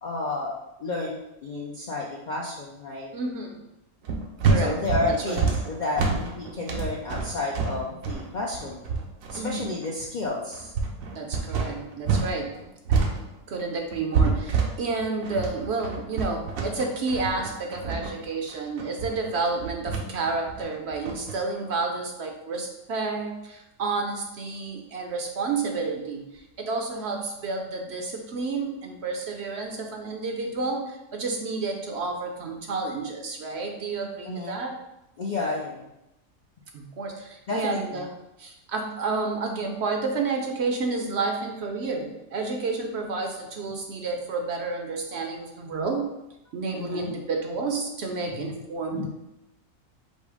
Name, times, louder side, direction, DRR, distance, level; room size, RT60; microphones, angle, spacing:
voice 1, 0.0-0.5 0.8-3.1 4.6-8.8 9.3-10.7 34.2-34.6 35.2-35.9 37.5-38.0 46.7-47.2 48.3-48.5 48.9-49.1, left 3 dB, 60° left, -2 dB, 0.5 m, -31 dB
voice 2, 3.1-3.6 4.4-4.8 5.0-5.4 9.3-9.7 11.1-12.5 12.9-13.1 13.5-34.8 36.7-38.1 38.4-46.1 46.5-49.1, right 3 dB, 60° right, 3 dB, 0.8 m, -30 dB
sound 1, 4.0-12.3 12.6-21.3, right 4 dB, 85° right, 1.1 m, -27 dB
5.4 x 2.0 x 4.7 m, 0.90 s
omnidirectional pair, 1.4 m